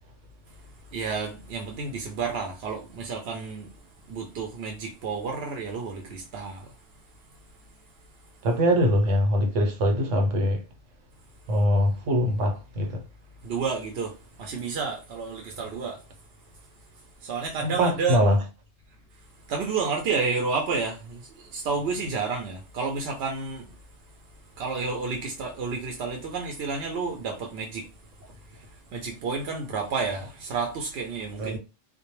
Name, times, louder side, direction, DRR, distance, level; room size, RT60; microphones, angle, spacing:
voice 1, 0.9-3.7 4.1-6.7 13.4-14.1 14.4-16.0 17.2-18.2 19.5-23.7 24.6-27.9 28.9-31.6, right 4 dB, 65° right, 0.8 m, -30 dB
voice 2, 8.4-10.6 11.5-13.0 17.6-18.4 31.4-31.6, equal, 90° right, 1.1 m, -23 dB
2.2 x 2.1 x 2.9 m
omnidirectional pair, 1.2 m